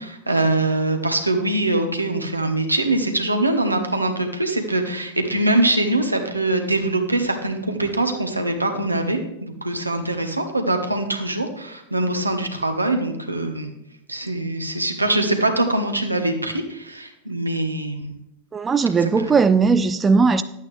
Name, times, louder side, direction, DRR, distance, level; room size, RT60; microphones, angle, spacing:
voice 1, 0.0-13.7 14.1-18.1 19.2-19.3, right 2 dB, 85° right, 1.1 m, -23 dB
voice 2, 18.5-20.4, right 4 dB, 15° right, 0.3 m, -18 dB
11.5 x 8.6 x 3.3 m
figure-of-eight pair, 90°, 0 cm